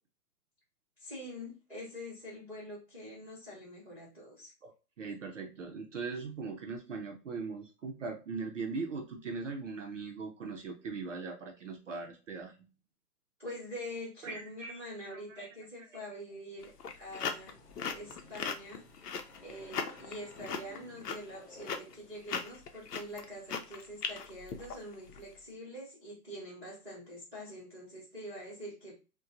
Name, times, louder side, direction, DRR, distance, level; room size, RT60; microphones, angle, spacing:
voice 1, 1.0-4.5 13.4-16.7 17.0-17.6 17.9-18.8 19.4-29.0, equal, 5° right, -16 dB, 0.8 m, -45 dB
voice 2, 5.0-12.7 14.2-15.5 15.9-16.1, right 4 dB, 50° right, 3 dB, 0.6 m, -40 dB
sound 1, 16.6-25.2, left 6 dB, 75° left, 0.7 m, -38 dB
sound 2, 17.0-22.3, left 2 dB, 45° left, 1.5 m, -56 dB
4.1 x 2.2 x 2.5 m, 0.32 s
hypercardioid pair, 170°, 48 cm